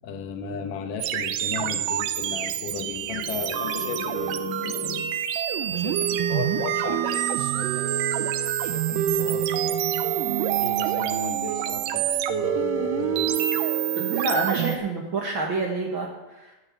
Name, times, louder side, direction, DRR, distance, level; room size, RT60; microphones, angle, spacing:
voice 1, 0.0-5.2 5.6-10.0 10.6-13.6, left 6 dB, 85° left, 6 dB, 2.7 m, -36 dB
sound 1, 1.0-14.8, right 10 dB, 85° right, 2.3 m, -26 dB
voice 2, 14.0-16.5, right 3 dB, 50° right, 0 dB, 1.6 m, -28 dB
9.8 x 7.6 x 8.1 m, 1.0 s
omnidirectional pair, 3.7 m